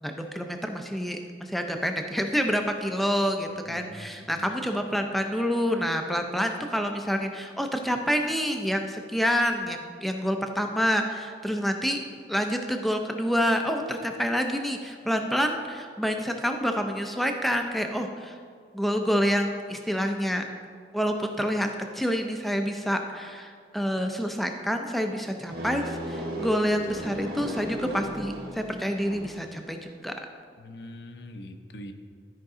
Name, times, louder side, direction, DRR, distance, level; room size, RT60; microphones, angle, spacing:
voice 1, 0.0-12.0 12.3-18.4 18.7-20.4 20.9-21.7 21.9-30.1, equal, ahead, 4 dB, 0.5 m, -27 dB
voice 2, 3.7-4.6 30.6-31.9, left 1 dB, 65° left, 7 dB, 0.7 m, -43 dB
sound 1, 25.5-29.5, right 1 dB, 60° right, 1.3 m, -35 dB
12.5 x 5.2 x 3.8 m, 2.1 s
head